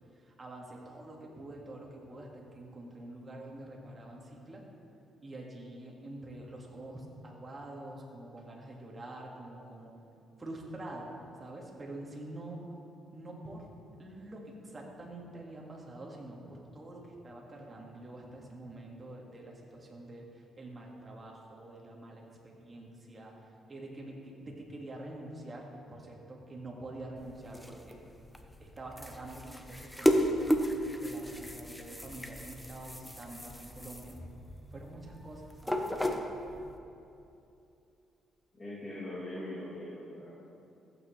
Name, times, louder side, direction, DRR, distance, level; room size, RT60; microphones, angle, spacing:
voice 1, 0.2-4.7 5.2-9.9 10.4-11.1 11.4-12.6 13.1-13.7 14.0-23.4 23.7-28.0 28.6-30.5 30.9-34.2 34.7-35.8, right 1 dB, 30° right, -1 dB, 1.9 m, -46 dB
sound 1, 27.2-36.7, equal, 5° left, 0.8 m, -34 dB
voice 2, 38.5-40.3, left 1 dB, 35° left, -10 dB, 2.7 m, -41 dB
14.5 x 8.5 x 3.3 m, 2.8 s
cardioid pair, 90°, 0 cm